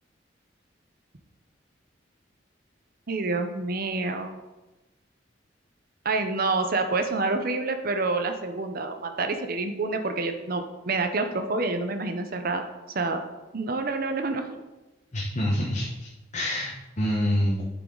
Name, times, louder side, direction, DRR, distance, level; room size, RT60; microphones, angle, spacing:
voice 1, 3.1-4.3 6.0-12.7 12.9-13.2 13.5-14.6, right 3 dB, 50° right, 7 dB, 0.8 m, -28 dB
voice 2, 15.1-16.1 16.3-17.6, equal, 40° left, -2 dB, 1.1 m, -26 dB
9.3 x 7.5 x 3.9 m, 1.1 s
head